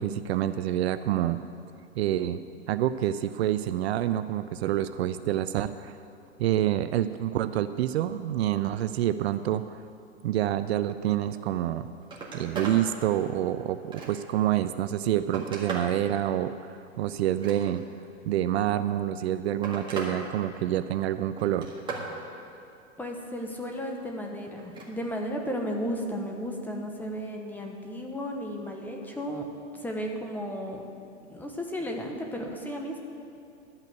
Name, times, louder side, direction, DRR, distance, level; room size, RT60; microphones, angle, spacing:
voice 1, 0.0-1.4 2.0-2.4 2.7-6.0 6.4-9.8 10.2-11.9 12.3-17.8 18.2-21.7, right 12 dB, 60° right, 12 dB, 0.5 m, -27 dB
Telephone, 11.7-11.8 12.0-12.8 13.3-14.4 14.9-16.0 17.2-18.0 19.0-20.2 20.5-21.0 21.4-22.1 24.6-24.9 26.3-26.4, right 4 dB, 15° right, 1.8 m, -38 dB
voice 2, 23.0-29.4 29.8-30.9 31.3-33.0, equal, 5° left, 1 dB, 0.8 m, -34 dB
12.0 x 5.7 x 9.2 m, 2.6 s
hypercardioid pair, 140°, 37 cm